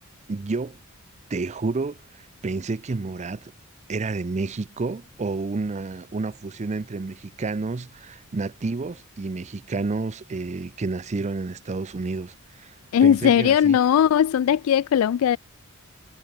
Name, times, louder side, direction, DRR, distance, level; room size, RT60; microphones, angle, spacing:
voice 1, 0.3-0.8 1.3-3.5 3.9-12.8 13.0-13.8, right 3 dB, 35° right, 0.5 m, -30 dB
voice 2, 12.9-15.4, left 9 dB, 80° left, 0.3 m, -18 dB
head